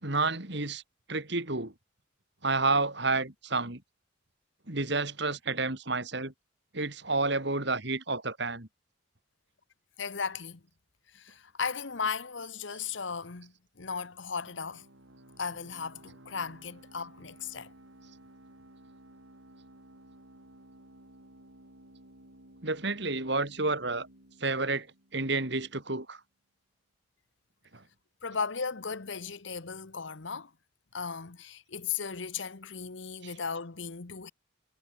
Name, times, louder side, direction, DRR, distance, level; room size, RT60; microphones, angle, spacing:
voice 1, 0.0-0.8 1.1-1.7 2.4-3.8 4.7-6.3 6.7-8.7 22.6-24.1 24.4-24.9 25.1-26.2 27.7-27.8 33.2-33.3, right 3 dB, 55° right, 2.9 m, -30 dB
voice 2, 10.0-10.6 11.1-14.8 15.4-17.7 28.2-30.5 30.9-34.3, left 5 dB, 65° left, 1.1 m, -36 dB
sound 1, 14.5-25.8, right 1 dB, 70° right, 5.2 m, -55 dB
head